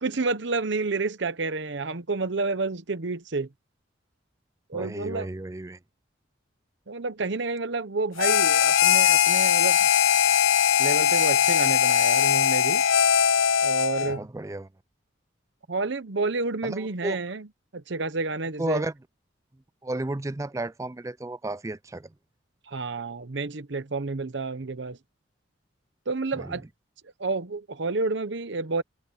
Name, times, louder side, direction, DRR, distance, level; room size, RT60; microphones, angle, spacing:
voice 1, 0.0-3.5 4.7-5.3 6.9-9.8 10.8-12.8 13.6-14.3 15.7-17.5 17.7-18.9 22.7-25.0 26.1-26.6 27.2-28.8, right 3 dB, 65° right, 0.9 m, -29 dB
voice 2, 4.7-5.8 14.0-14.7 16.6-17.2 18.6-18.9 19.8-22.1 26.4-26.6, right 2 dB, 15° right, 0.4 m, -33 dB
Harmonica, 8.2-14.2, left 8 dB, 90° left, 0.5 m, -20 dB
head